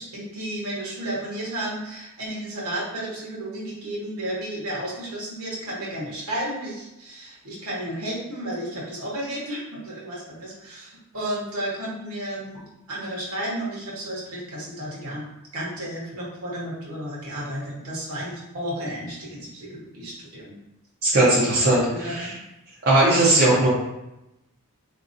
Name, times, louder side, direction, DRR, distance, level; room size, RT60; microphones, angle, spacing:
voice 1, 0.0-12.6 12.9-15.2 15.5-20.5 21.3-21.7 21.9-22.3, right 1 dB, 70° right, -5 dB, 1.2 m, -32 dB
voice 2, 21.0-22.3 22.9-23.7, right 2 dB, 45° right, -8 dB, 0.8 m, -18 dB
3.6 x 2.9 x 2.6 m, 0.92 s
head